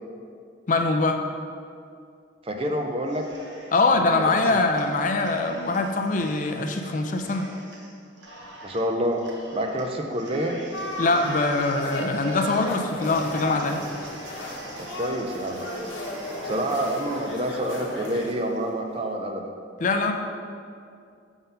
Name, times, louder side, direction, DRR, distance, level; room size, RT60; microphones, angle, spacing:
voice 1, 0.7-1.2 3.7-7.5 11.0-13.8 19.8-20.1, left 3 dB, 40° left, 5 dB, 0.4 m, -23 dB
voice 2, 2.4-3.3 3.9-4.6 8.6-9.2 9.5-10.6 14.8-15.6 16.4-19.5, right 1 dB, 30° right, 3 dB, 0.5 m, -28 dB
Cheering, 3.1-3.9 4.2-18.7, right 1 dB, 65° right, 1.1 m, -44 dB
sound 1, 10.7-18.3, left 2 dB, 75° left, 1.0 m, -35 dB
7.0 x 3.8 x 5.4 m, 2.4 s
head